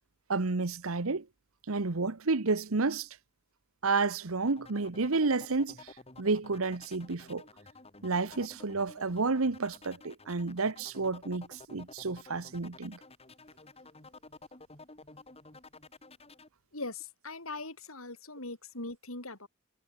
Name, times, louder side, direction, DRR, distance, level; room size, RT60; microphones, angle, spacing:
voice 1, 0.3-1.2 1.7-3.1 3.8-5.9 6.2-7.4 8.0-13.0, right 3 dB, 75° right, 1.1 m, -30 dB
sound 1, 4.5-16.5, left 3 dB, 30° left, 6.4 m, -52 dB
voice 2, 16.7-19.5, left 2 dB, 70° left, 7.7 m, -41 dB
head